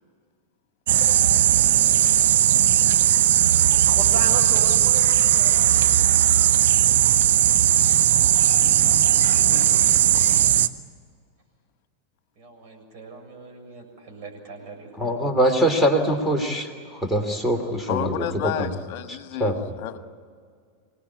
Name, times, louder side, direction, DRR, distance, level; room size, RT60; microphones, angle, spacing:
sound 1, 0.9-10.7, right 11 dB, 60° right, 0.8 m, -18 dB
voice 1, 3.8-5.9 12.4-15.1, right 4 dB, 40° right, 1 dB, 7.2 m, -37 dB
voice 2, 8.3-10.4 17.9-20.0, left 10 dB, 45° left, 10 dB, 1.5 m, -33 dB
voice 3, 15.0-18.7 19.1-19.6, right 1 dB, ahead, 5 dB, 2.8 m, -23 dB
26.0 x 18.5 x 9.6 m, 2.1 s
figure-of-eight pair, 90°, 0 cm